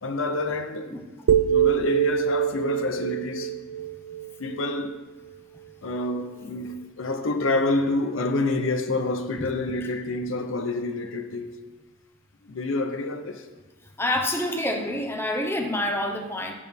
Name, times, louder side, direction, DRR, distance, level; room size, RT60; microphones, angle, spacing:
voice 1, 0.0-1.0 1.5-3.5 4.4-5.0 5.8-11.6 12.4-13.5, left 2 dB, 65° left, 0.6 m, -28 dB
sound 1, 1.3-5.4, right 10 dB, 70° right, 0.3 m, -25 dB
voice 2, 14.0-16.5, left 1 dB, 10° left, 0.7 m, -27 dB
12.5 x 8.3 x 3.5 m
head